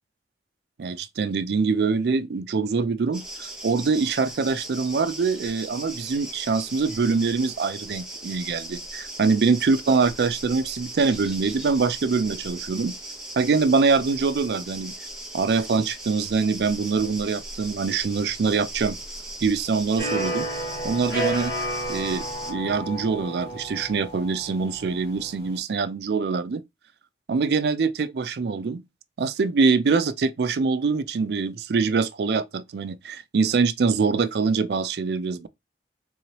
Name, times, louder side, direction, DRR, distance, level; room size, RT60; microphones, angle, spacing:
voice 1, 0.8-13.0 13.4-14.9 15.3-19.0 19.4-20.5 20.8-21.5 21.9-26.6 27.3-28.8 29.2-35.5, right 4 dB, 65° right, 0.4 m, -24 dB
sound 1, 3.1-22.5, right 1 dB, 5° right, 0.8 m, -38 dB
sound 2, 20.0-25.6, right 1 dB, 65° left, 2.4 m, -32 dB
3.8 x 3.0 x 2.8 m
head